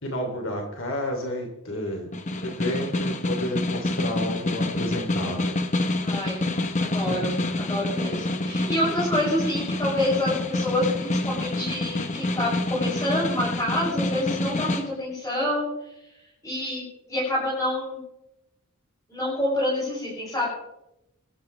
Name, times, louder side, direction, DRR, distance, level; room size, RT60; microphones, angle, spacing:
voice 1, 0.0-2.1 2.4-5.5 6.6-6.7 7.0-7.3, left 1 dB, 60° left, 2 dB, 3.0 m, -31 dB
Snare drum, 2.1-14.9, left 2 dB, 35° left, 1.1 m, -27 dB
voice 2, 6.0-6.4 6.8-15.7 16.4-18.0 19.1-20.5, left 1 dB, 15° left, -8 dB, 6.8 m, -27 dB
23.5 x 14.0 x 3.3 m, 0.87 s
head